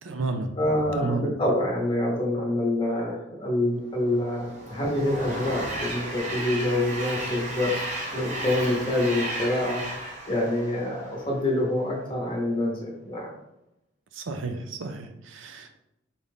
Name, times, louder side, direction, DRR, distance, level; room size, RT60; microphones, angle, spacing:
voice 1, 0.0-0.5 0.9-1.3 14.1-15.7, right 3 dB, 75° right, 7 dB, 0.5 m, -31 dB
voice 2, 0.6-7.7 8.1-9.8 10.3-13.3, left 1 dB, 25° left, -2 dB, 1.0 m, -26 dB
Train, 4.0-11.5, right 1 dB, 35° right, 0.6 m, -34 dB
4.0 x 2.5 x 3.6 m, 0.86 s
head